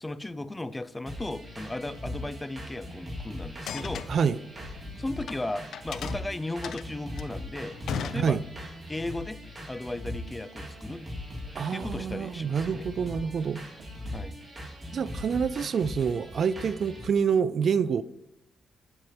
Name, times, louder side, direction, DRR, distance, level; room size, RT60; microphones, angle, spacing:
voice 1, 0.0-4.1 5.0-8.4 8.9-9.4 9.7-11.1 11.7-12.9 14.1-14.4, left 2 dB, 15° left, 0.4 m, -36 dB
sound 1, 1.1-17.0, left 1 dB, 25° right, 2.9 m, -40 dB
sound 2, 3.6-5.4 5.7-8.8, left 7 dB, 80° left, 0.5 m, -37 dB
voice 2, 4.1-4.4 8.1-8.4 11.5-13.6 14.9-18.0, right 6 dB, 55° right, 0.3 m, -27 dB
8.6 x 7.8 x 2.9 m
cardioid pair, 100°, 0 cm